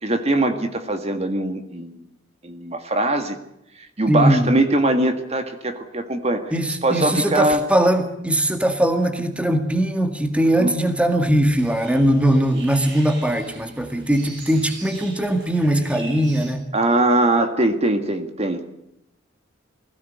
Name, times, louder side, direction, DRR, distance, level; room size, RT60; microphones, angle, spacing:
voice 1, 0.0-2.0 2.4-3.4 4.0-6.5 6.8-7.6 10.6-10.7 16.7-18.7, right 1 dB, 30° right, 7 dB, 1.8 m, -21 dB
voice 2, 4.1-4.5 6.5-16.7, right 1 dB, 5° right, 7 dB, 1.9 m, -20 dB
sound 1, 11.6-16.5, right 3 dB, 60° right, 7.8 m, -42 dB
21.5 x 16.5 x 9.4 m, 0.82 s
head